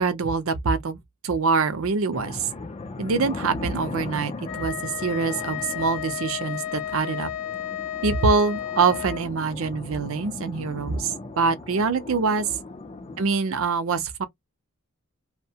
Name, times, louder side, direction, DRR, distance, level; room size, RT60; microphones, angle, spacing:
voice 1, 0.0-2.5 3.0-7.3 8.0-12.6 13.2-14.2, right 4 dB, 65° right, 0.5 m, -24 dB
sound 1, 2.1-13.2, left 3 dB, 25° left, 0.4 m, -38 dB
Wind instrument woodwind instrument, 4.4-9.3, left 11 dB, 75° left, 0.7 m, -33 dB
2.7 x 2.1 x 2.7 m
head